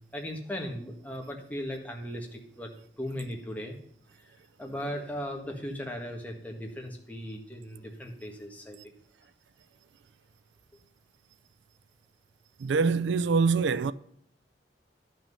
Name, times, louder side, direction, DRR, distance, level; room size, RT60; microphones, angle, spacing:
voice 1, 0.1-3.8 4.1-8.8, equal, 10° left, 1.5 m, -38 dB
voice 2, 12.6-13.9, right 4 dB, 85° right, 0.4 m, -24 dB
11.5 x 6.1 x 5.5 m
head